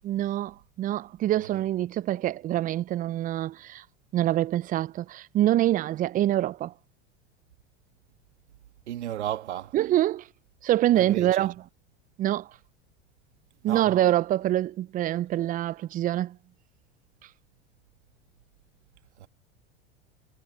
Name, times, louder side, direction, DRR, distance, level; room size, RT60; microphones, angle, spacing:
voice 1, 0.0-3.8 4.1-6.7 9.7-10.3 10.6-11.5 12.2-12.5 13.6-16.4, right 13 dB, 25° right, 0.4 m, -25 dB
voice 2, 8.9-9.7 10.9-11.5 13.7-13.9 19.2-19.3, right 11 dB, 85° right, 1.7 m, -34 dB
hypercardioid pair, 95°, 33 cm